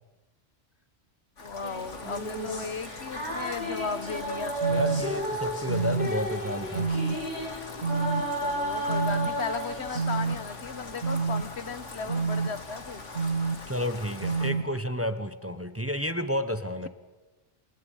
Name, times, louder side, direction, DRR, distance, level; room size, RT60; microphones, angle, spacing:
Rain, 1.4-14.5, left 3 dB, 80° left, 2.7 m, -42 dB
voice 1, 1.4-4.6 8.4-13.0, left 5 dB, 65° left, 13 dB, 1.4 m, -36 dB
sound 1, 1.6-10.3, equal, 35° left, 5.8 m, -33 dB
sound 2, 4.6-5.0 5.7-6.1 6.7-7.1 7.8-8.2 8.9-9.3 9.9-10.3 11.0-11.4 12.1-12.5 13.1-13.6 14.2-14.6, right 4 dB, 90° right, 2.1 m, -27 dB
voice 2, 4.7-6.9 13.7-16.9, equal, 10° right, 11 dB, 1.2 m, -31 dB
29.0 x 26.5 x 5.6 m, 1.2 s
omnidirectional pair, 1.2 m